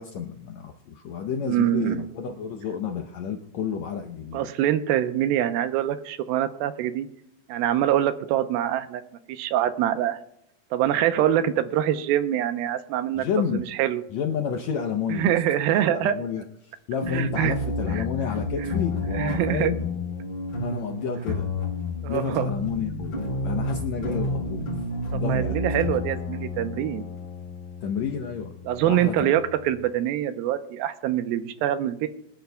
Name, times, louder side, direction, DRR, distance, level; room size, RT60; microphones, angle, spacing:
voice 1, 0.0-4.5 13.1-13.6 14.1-15.3 15.8-19.8 20.6-21.5 22.1-24.9 25.1-25.8 27.8-28.5 28.9-29.4, left 7 dB, 80° left, 4 dB, 1.6 m, -30 dB
voice 2, 1.4-2.0 4.3-7.1 7.5-9.0 9.3-10.2 10.7-13.3 13.5-14.0 15.1-16.1 17.1-17.5 17.9-18.0 19.1-19.7 22.0-22.5 25.1-27.0 28.7-32.1, right 11 dB, 85° right, 10 dB, 2.6 m, -24 dB
sound 1, 17.0-29.8, left 2 dB, 40° left, 4.7 m, -31 dB
25.5 x 10.5 x 2.3 m, 0.73 s
omnidirectional pair, 4.2 m